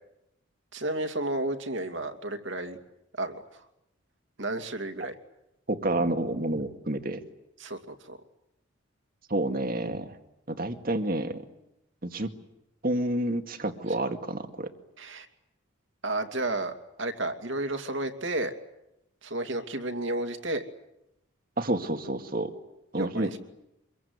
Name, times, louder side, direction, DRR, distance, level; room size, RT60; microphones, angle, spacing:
voice 1, 0.7-2.8 3.2-3.6 4.4-5.1 7.6-8.2 15.0-15.3 16.0-16.7 17.0-18.5 19.2-20.6 22.9-23.4, right 2 dB, 60° right, 7 dB, 2.7 m, -32 dB
voice 2, 5.7-7.2 9.3-10.1 10.5-11.4 12.0-12.3 12.8-14.7 21.6-22.5 22.9-23.4, right 1 dB, 45° right, 6 dB, 2.1 m, -29 dB
26.0 x 22.5 x 9.6 m, 0.86 s
head